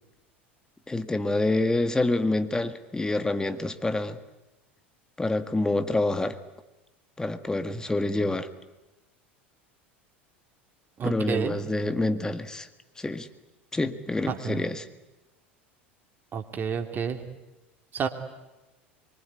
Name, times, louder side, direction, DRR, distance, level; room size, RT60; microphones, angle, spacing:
voice 1, 0.9-4.2 5.2-6.4 7.2-8.5 11.0-12.7 13.0-13.3 13.7-14.9, left 2 dB, 10° left, 10 dB, 1.9 m, -27 dB
voice 2, 11.0-11.6 14.2-14.6 16.3-17.2 17.9-18.1, right 6 dB, 30° right, 5 dB, 2.9 m, -29 dB
24.5 x 24.0 x 9.8 m, 1.0 s
figure-of-eight pair, 75°, 6 cm